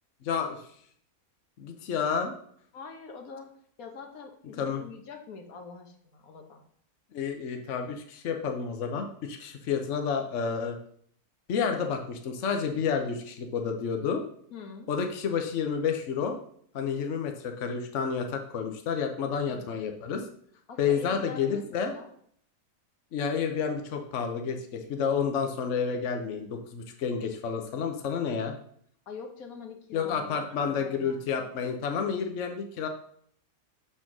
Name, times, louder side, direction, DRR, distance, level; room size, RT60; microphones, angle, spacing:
voice 1, 0.2-0.6 1.6-2.3 4.6-4.8 7.1-10.8 11.5-14.2 14.9-16.4 16.7-20.3 20.8-21.9 23.1-28.5 29.9-32.9, left 6 dB, 60° left, 4 dB, 1.1 m, -30 dB
voice 2, 2.7-3.5 3.8-6.6 14.5-14.9 20.7-21.6 21.9-22.1 29.1-31.3, left 4 dB, 75° left, 4 dB, 1.5 m, -44 dB
7.0 x 4.4 x 6.0 m, 0.63 s
omnidirectional pair, 1.5 m